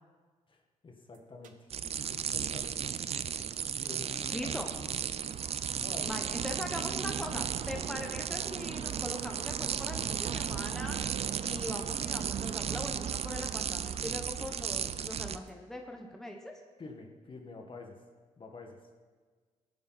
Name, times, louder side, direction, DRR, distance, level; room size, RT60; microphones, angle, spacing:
voice 1, 0.5-1.7 2.1-2.8 3.8-4.9 5.7-6.1 16.8-18.0 18.4-18.8, left 3 dB, 40° left, 3 dB, 1.9 m, -48 dB
sound 1, 1.1-1.2 1.4-1.8 2.0-2.1 2.3-3.0 3.2-3.6 3.8-4.5 4.7-6.0 6.2-6.6 6.8-6.9 7.1-7.2 7.4-7.8 8.0-8.4 8.6-9.2 9.5-10.1 10.4-10.7 11.0-11.3 11.6-11.7 11.9-12.5 12.8-13.1 13.4-14.0 14.3-14.4 14.6-15.5, right 10 dB, 80° right, 0.9 m, -51 dB
sound 2, 1.7-15.4, right 8 dB, 50° right, 0.6 m, -35 dB
voice 2, 4.3-4.7 6.1-11.0 11.4-16.5, left 1 dB, 5° left, 2 dB, 1.3 m, -41 dB
16.5 x 9.3 x 4.3 m, 1.5 s
cardioid pair, 75°, 13 cm